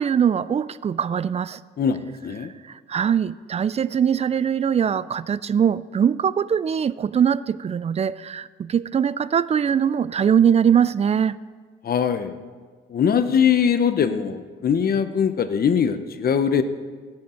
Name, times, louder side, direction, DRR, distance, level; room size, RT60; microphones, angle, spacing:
voice 1, 0.0-1.6 2.6-11.4, right 8 dB, 35° right, 18 dB, 0.4 m, -22 dB
voice 2, 1.8-2.5 11.8-12.3 12.9-16.6, left 7 dB, 50° left, 10 dB, 0.9 m, -21 dB
17.5 x 7.8 x 4.4 m, 1.5 s
cardioid pair, 90°, 20 cm